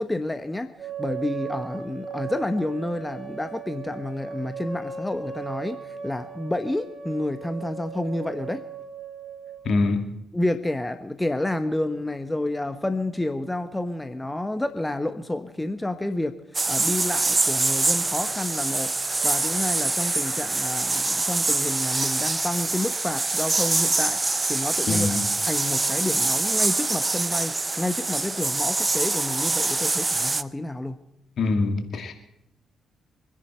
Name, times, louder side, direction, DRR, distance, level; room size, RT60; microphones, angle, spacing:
voice 1, 0.0-8.6 10.3-18.9 19.2-25.2 25.4-31.0, left 1 dB, 15° left, 9 dB, 1.1 m, -29 dB
sound 1, 0.8-9.7, right 6 dB, 50° right, 6.3 m, -37 dB
voice 2, 9.7-10.0 24.9-25.2 31.4-32.1, left 3 dB, 55° left, 6 dB, 2.1 m, -24 dB
sound 2, 16.5-30.4, right 3 dB, 25° right, 0.6 m, -25 dB
25.0 x 10.5 x 4.5 m, 0.80 s
hypercardioid pair, 40°, 0 cm